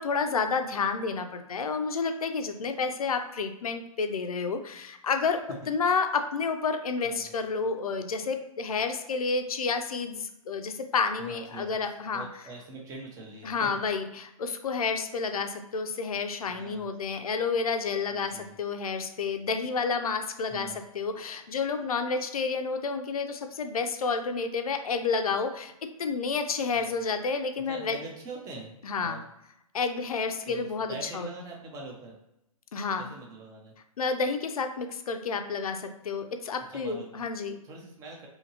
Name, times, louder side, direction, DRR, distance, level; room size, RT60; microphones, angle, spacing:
voice 1, 0.0-5.4 5.7-12.3 13.4-25.7 26.0-28.0 28.8-29.2 29.7-31.3 32.7-33.1 34.0-37.6, left 5 dB, 80° left, 7 dB, 0.4 m, -30 dB
voice 2, 11.2-11.7 12.1-13.7 16.5-16.9 18.1-18.5 20.5-20.8 26.7-26.9 27.7-29.3 30.5-32.2 33.0-33.7 36.7-37.2 37.6-38.3, right 2 dB, 20° right, 0 dB, 0.6 m, -44 dB
2.8 x 2.5 x 2.8 m, 0.85 s
hypercardioid pair, 135°, 19 cm